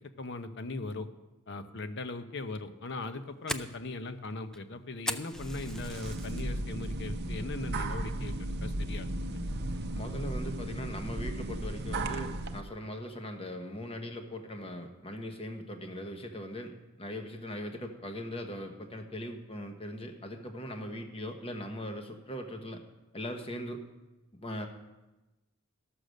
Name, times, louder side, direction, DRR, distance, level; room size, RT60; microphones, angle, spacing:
voice 1, 0.2-1.1 1.5-9.1, left 2 dB, 55° left, 10 dB, 0.7 m, -39 dB
Fire, 2.9-6.4 6.8-7.2 7.6-7.7 8.3-8.6, equal, 5° left, 0.3 m, -39 dB
sound 1, 5.3-12.6, right 1 dB, 50° right, 0.6 m, -35 dB
voice 2, 9.9-22.8 23.1-23.8 24.3-24.7, equal, 25° left, 5 dB, 1.1 m, -40 dB
13.0 x 6.6 x 6.4 m, 1.1 s
head